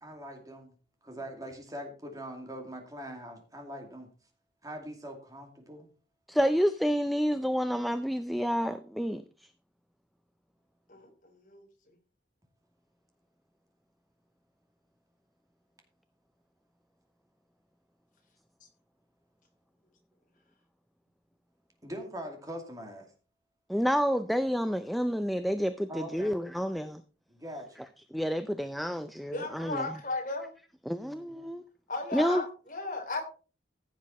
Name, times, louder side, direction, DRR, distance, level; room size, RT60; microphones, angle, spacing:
voice 1, 0.0-0.7 1.0-4.1 4.6-5.9 21.8-23.1 25.9-26.3 27.3-27.8 31.0-31.4, equal, 20° right, 2.4 m, -42 dB
voice 2, 6.3-9.5 23.7-27.0 28.1-29.9 30.9-31.6 32.1-32.4, equal, ahead, 0.5 m, -29 dB
voice 3, 10.9-11.6 29.3-30.5 31.9-33.2, left 3 dB, 45° left, 3.4 m, -35 dB
15.5 x 7.4 x 4.2 m
head